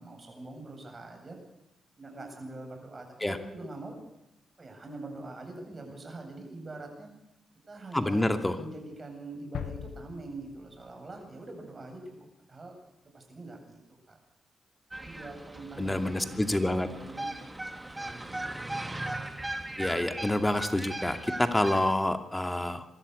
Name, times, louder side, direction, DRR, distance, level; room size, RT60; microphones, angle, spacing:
voice 1, 0.0-1.4 2.0-4.0 4.6-7.1 7.7-12.7 13.1-13.8 14.1-14.2 15.0-16.3 16.8-17.4 17.8-18.3 18.9-19.1, right 2 dB, 40° right, 2 dB, 8.0 m, -43 dB
voice 2, 7.9-8.6 15.8-16.9 19.8-22.8, left 1 dB, 15° left, 7 dB, 2.3 m, -27 dB
sound 1, 9.5-11.4, left 9 dB, 75° left, 0.8 m, -41 dB
sound 2, 14.9-21.9, right 1 dB, 20° right, 2.5 m, -38 dB
24.0 x 13.0 x 8.4 m, 0.87 s
hypercardioid pair, 40°, 0 cm